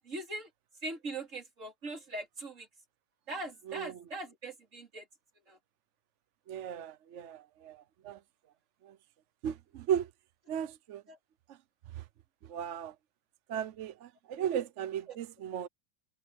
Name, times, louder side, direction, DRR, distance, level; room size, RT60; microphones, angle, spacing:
voice 1, 0.1-0.5 0.8-2.7 3.3-5.0 5.5-5.6 11.1-11.2 15.1-15.2, right 2 dB, 40° right, 3.7 m, -41 dB
voice 2, 6.5-7.8 8.0-8.2 8.9-9.0 9.4-10.1 10.5-11.0 12.5-12.9 13.5-15.7, right 9 dB, 60° right, 0.7 m, -35 dB
omnidirectional pair, 2.0 m